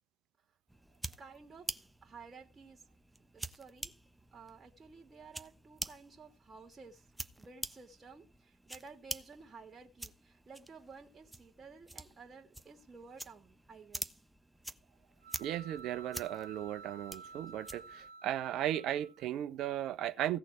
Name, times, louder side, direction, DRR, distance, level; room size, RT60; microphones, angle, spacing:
sound 1, 0.7-18.1, right 1 dB, 10° right, 1.2 m, -47 dB
voice 1, 1.2-2.9 3.3-3.9 4.3-7.1 7.4-14.2, right 4 dB, 35° right, 2.6 m, -54 dB
sound 2, 15.2-19.3, right 4 dB, 85° right, 0.7 m, -52 dB
voice 2, 15.4-20.4, right 12 dB, 65° right, 1.2 m, -36 dB
16.5 x 6.5 x 4.6 m
hypercardioid pair, 55°, 0 cm